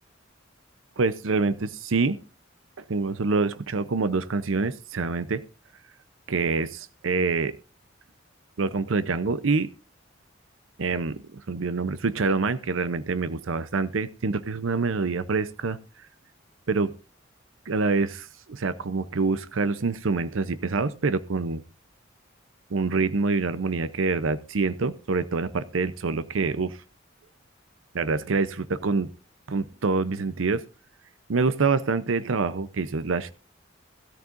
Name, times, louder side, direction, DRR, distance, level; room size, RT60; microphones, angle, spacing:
voice 1, 1.0-2.2 2.9-5.4 6.3-7.5 8.6-9.7 10.8-15.8 16.7-16.9 17.7-21.6 22.7-26.8 27.9-29.1 29.5-30.6 31.3-33.3, right 4 dB, 90° right, 14 dB, 0.7 m, -26 dB
16.5 x 13.0 x 2.5 m, 0.34 s
head